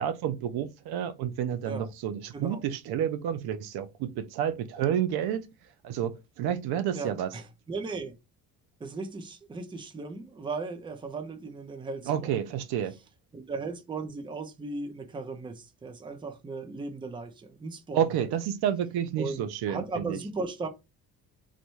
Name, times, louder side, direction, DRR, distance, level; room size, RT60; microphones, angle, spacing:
voice 1, 0.0-5.4 5.8-7.3 12.1-13.0 17.9-20.2, right 9 dB, 75° right, 0.6 m, -30 dB
voice 2, 6.9-8.1 8.8-12.3 13.3-18.0 19.2-20.7, right 3 dB, 15° right, 0.4 m, -37 dB
4.0 x 2.2 x 3.0 m
cardioid pair, 145°, 38 cm